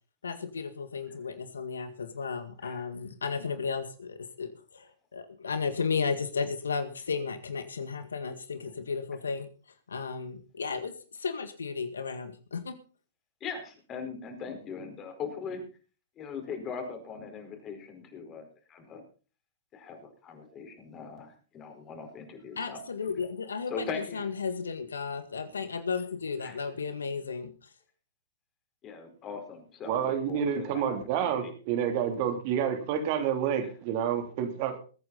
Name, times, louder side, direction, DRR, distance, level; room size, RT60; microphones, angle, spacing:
voice 1, 0.2-9.5 9.9-12.8 22.6-27.5, left 5 dB, 80° left, 10 dB, 1.9 m, -34 dB
voice 2, 13.4-15.6 16.2-19.0 19.7-22.8 23.7-24.3 26.4-26.7 28.8-31.5 33.6-33.7, left 5 dB, 30° left, 5 dB, 4.9 m, -40 dB
voice 3, 29.9-34.8, right 8 dB, 45° right, 6 dB, 3.0 m, -29 dB
21.5 x 9.5 x 4.1 m, 0.37 s
hypercardioid pair, 115°, 0 cm